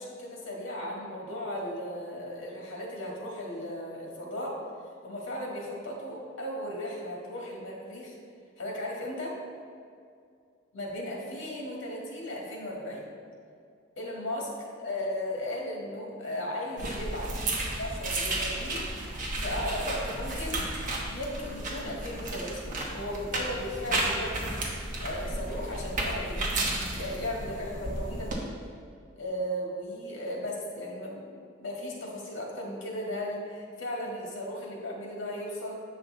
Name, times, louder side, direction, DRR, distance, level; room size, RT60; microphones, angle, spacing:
voice 1, 0.0-4.6 5.0-8.2 8.6-9.4 10.7-13.2 14.0-14.5 14.8-17.3 17.7-18.9 19.4-20.6 21.1-24.6 25.0-26.4 26.9-28.5 29.2-35.8, left 1 dB, 70° left, -2 dB, 1.9 m, -36 dB
sound 1, 16.8-28.3, right 2 dB, 40° right, 1.2 m, -33 dB
8.6 x 5.7 x 3.9 m, 2.3 s
head